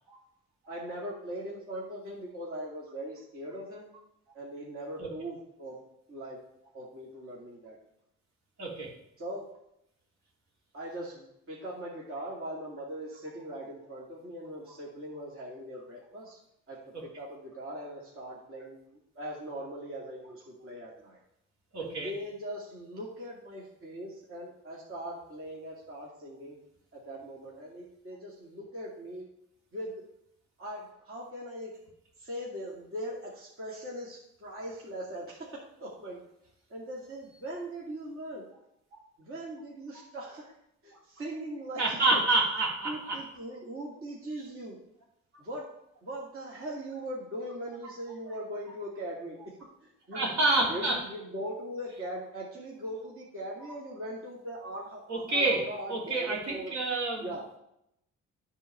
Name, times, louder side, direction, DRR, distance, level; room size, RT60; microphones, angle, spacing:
voice 1, 0.7-3.9 4.3-5.8 6.1-6.4 6.7-7.8 9.2-9.4 10.7-16.4 16.7-18.8 19.1-21.2 21.8-26.6 26.9-29.3 29.7-30.0 30.6-31.7 32.2-36.2 36.7-38.4 39.2-40.5 40.8-42.2 42.8-44.8 45.4-45.7 46.0-50.3 50.5-56.7 57.2-57.4, right 1 dB, 45° right, -4 dB, 2.4 m, -40 dB
voice 2, 21.7-22.1 41.8-43.2 50.1-51.0 55.1-55.6 55.9-57.3, right 2 dB, 65° right, -3 dB, 3.0 m, -27 dB
10.0 x 4.0 x 6.7 m, 0.79 s
cardioid pair, 90°, 30 cm